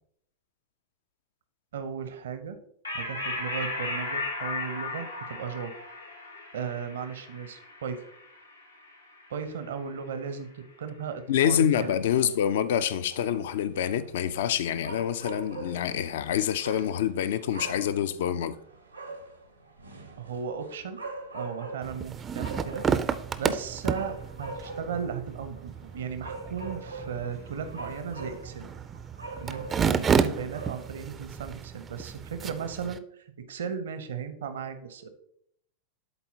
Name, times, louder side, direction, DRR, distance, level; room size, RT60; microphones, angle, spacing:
voice 1, 1.7-2.6 2.9-5.7 6.5-8.0 9.3-12.0 20.2-21.0 21.3-23.1 23.4-28.7 29.4-35.1, right 6 dB, 60° right, 0.7 m, -36 dB
sound 1, 2.9-9.7, left 2 dB, 80° left, 1.0 m, -36 dB
voice 2, 11.3-18.6, left 9 dB, 55° left, 0.4 m, -26 dB
sound 2, 13.1-31.2, right 2 dB, 85° right, 0.9 m, -43 dB
sound 3, 21.8-33.0, right 6 dB, 20° right, 0.4 m, -32 dB
11.0 x 4.2 x 2.8 m
figure-of-eight pair, 90°, 0 cm